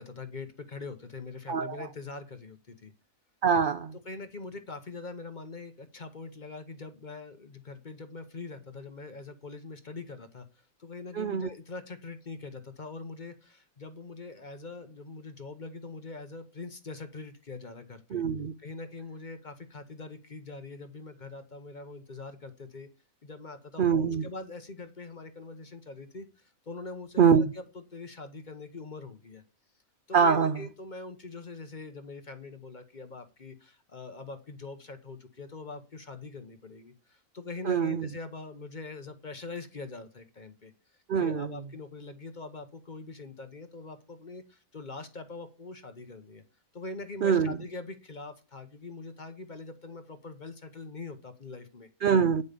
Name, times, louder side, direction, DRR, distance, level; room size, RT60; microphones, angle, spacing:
voice 1, 0.0-2.9 4.0-18.2 18.6-22.9 23.2-27.6 27.9-29.4 30.1-46.4 46.7-51.9, left 3 dB, 35° left, 1.0 m, -43 dB
voice 2, 1.5-1.9 3.4-4.0 11.1-11.5 18.1-18.5 23.8-24.3 27.2-27.5 30.1-30.7 37.7-38.1 41.1-41.6 47.2-47.6 52.0-52.4, right 6 dB, 60° right, 0.5 m, -24 dB
9.6 x 5.5 x 6.7 m
omnidirectional pair, 1.5 m